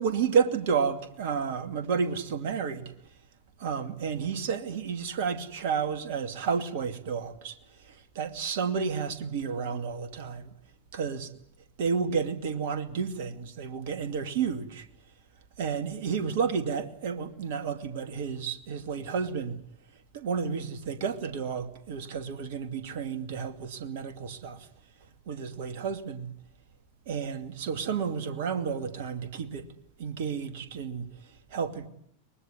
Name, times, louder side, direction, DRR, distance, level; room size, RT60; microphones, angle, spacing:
voice 1, 0.0-2.9 3.6-10.5 11.0-11.3 11.8-14.9 15.6-19.6 20.1-24.7 25.3-26.3 27.1-29.7 30.0-31.9, right 6 dB, 50° right, 2.5 m, -31 dB
23.5 x 21.0 x 9.6 m
figure-of-eight pair, 90°, 0 cm